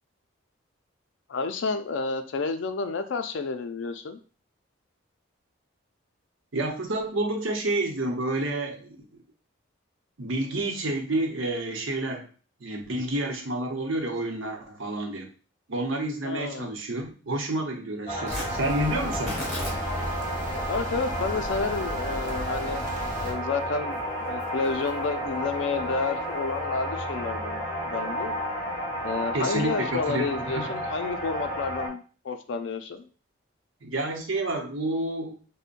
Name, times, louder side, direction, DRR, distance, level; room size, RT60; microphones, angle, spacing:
voice 1, 1.3-4.2 16.2-16.7 20.7-28.4 29.0-33.1, left 4 dB, 65° left, 8 dB, 0.4 m, -30 dB
voice 2, 6.5-9.1 10.2-12.3 12.6-15.3 15.7-19.4 29.3-30.8 33.8-35.4, right 1 dB, 75° right, 2 dB, 0.8 m, -29 dB
sound 1, 18.1-31.9, equal, 20° left, 1.7 m, -32 dB
Tearing, 18.2-26.6, equal, ahead, 1.6 m, -43 dB
sound 2, 18.3-23.3, equal, 40° right, 0.8 m, -37 dB
5.2 x 2.1 x 2.5 m, 0.38 s
head